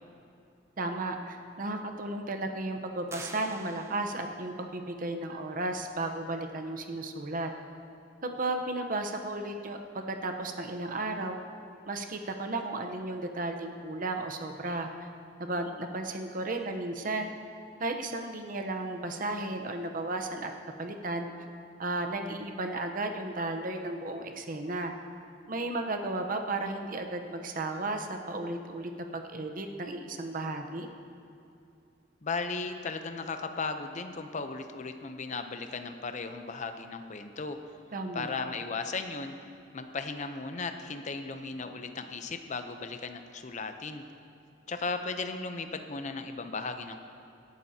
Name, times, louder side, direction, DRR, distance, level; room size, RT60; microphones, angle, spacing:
voice 1, 0.8-7.5 8.2-11.4 11.9-14.9 15.4-17.3 17.8-20.5 20.8-21.3 21.8-25.0 25.5-30.9 37.9-38.3, right 2 dB, 50° right, 5 dB, 0.9 m, -34 dB
sound 1, 3.1-4.5, right 2 dB, 15° right, 0.6 m, -46 dB
voice 2, 32.2-37.6 38.1-39.3 39.7-44.0 44.7-47.0, left 4 dB, 40° left, 7 dB, 0.7 m, -36 dB
17.5 x 11.5 x 2.8 m, 2.6 s
head